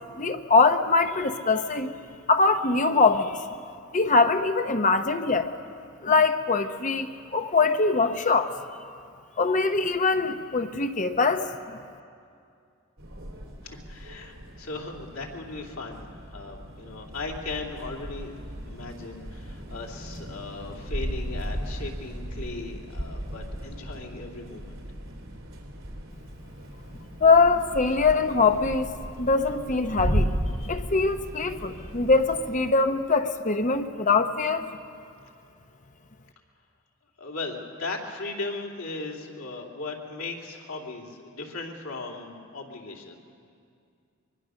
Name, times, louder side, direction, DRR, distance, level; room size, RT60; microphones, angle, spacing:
voice 1, 0.2-1.9 2.3-3.4 3.9-5.5 6.0-8.5 9.4-11.5 27.2-28.9 29.2-30.3 30.6-34.7, left 4 dB, 40° left, 8 dB, 0.8 m, -22 dB
sound 1, 13.0-32.7, equal, 75° right, 3.5 m, -36 dB
voice 2, 13.6-18.3 18.7-24.8 37.2-43.2, left 3 dB, 90° left, 0 dB, 3.0 m, -37 dB
24.0 x 23.0 x 6.4 m, 2.4 s
head